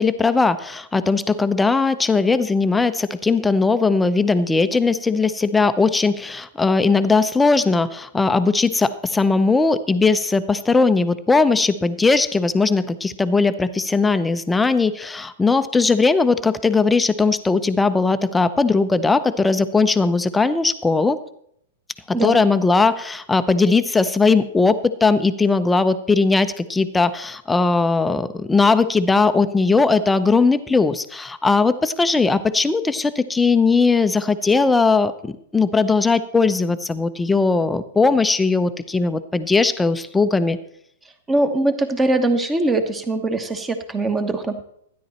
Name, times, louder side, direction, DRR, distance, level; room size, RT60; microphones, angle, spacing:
voice 1, 0.0-21.2 22.1-40.6, left 4 dB, 10° left, 12 dB, 0.7 m, -19 dB
voice 2, 41.3-44.6, right 2 dB, 15° right, 7 dB, 1.3 m, -21 dB
12.5 x 10.5 x 4.3 m, 0.69 s
hypercardioid pair, 110°, 0 cm